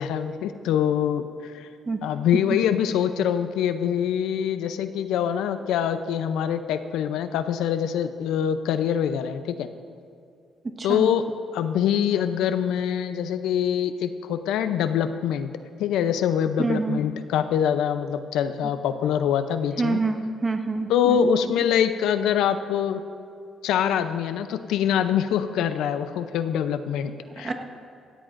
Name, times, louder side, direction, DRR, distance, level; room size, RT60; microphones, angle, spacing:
voice 1, 0.0-1.7 2.0-9.7 10.8-11.3 11.5-15.5 15.8-20.0 20.9-23.0 23.6-27.5, left 9 dB, 90° left, 10 dB, 0.6 m, -24 dB
voice 2, 10.8-11.1 16.6-17.0 19.8-21.3 27.4-27.5, right 3 dB, 30° right, 3 dB, 1.4 m, -26 dB
17.0 x 15.0 x 2.6 m, 2.4 s
cardioid pair, 90°, 0 cm